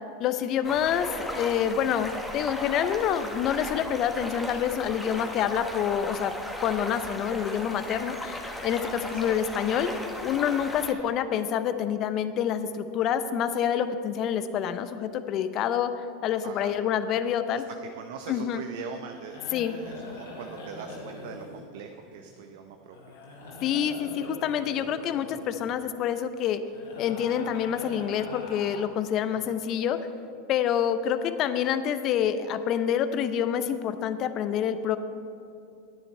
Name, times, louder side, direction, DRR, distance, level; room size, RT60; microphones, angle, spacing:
voice 1, 0.2-6.3 6.6-9.9 10.2-17.6 18.3-18.6 19.5-19.8 23.6-26.6 27.0-30.0 30.5-35.0, left 9 dB, 45° left, 11 dB, 0.6 m, -27 dB
sound 1, 0.6-10.9, left 1 dB, 10° left, 1.4 m, -36 dB
voice 2, 9.1-9.4 10.8-10.9 16.4-16.7 17.5-19.4 19.7-23.0 29.3-29.6, right 7 dB, 70° right, 5 dB, 0.6 m, -42 dB
sound 2, 19.1-22.5 22.9-25.8 26.7-28.8, left 2 dB, 80° left, 2.3 m, -43 dB
10.0 x 9.7 x 4.6 m, 2.6 s
hypercardioid pair, 90°, 0 cm